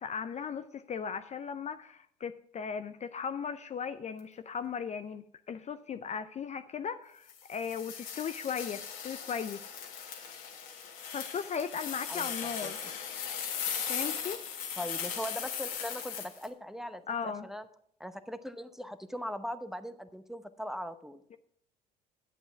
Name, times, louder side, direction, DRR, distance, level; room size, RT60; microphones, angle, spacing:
voice 1, 0.0-9.6 11.1-12.8 13.9-14.4 17.1-17.5 21.3-21.4, left 6 dB, 35° left, 10 dB, 0.5 m, -37 dB
sound 1, 7.3-16.5, left 7 dB, 65° left, 1.7 m, -38 dB
voice 2, 14.8-17.7 18.0-21.2, equal, ahead, 10 dB, 0.8 m, -40 dB
11.0 x 8.2 x 4.6 m, 0.70 s
hypercardioid pair, 60°, 21 cm